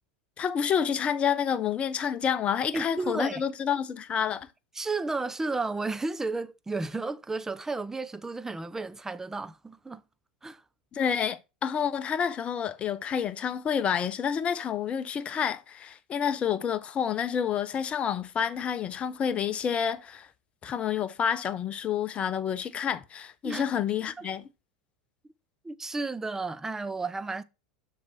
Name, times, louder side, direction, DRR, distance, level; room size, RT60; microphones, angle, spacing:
voice 1, 0.4-4.5 10.9-20.3 20.6-24.4, left 8 dB, 30° left, 1.0 m, -29 dB
voice 2, 2.7-3.4 4.7-10.0 10.4-10.6 23.4-23.7 24.2-24.3 25.6-27.4, right 3 dB, 10° right, 0.7 m, -33 dB
7.2 x 6.2 x 6.0 m
hypercardioid pair, 90°, 4 cm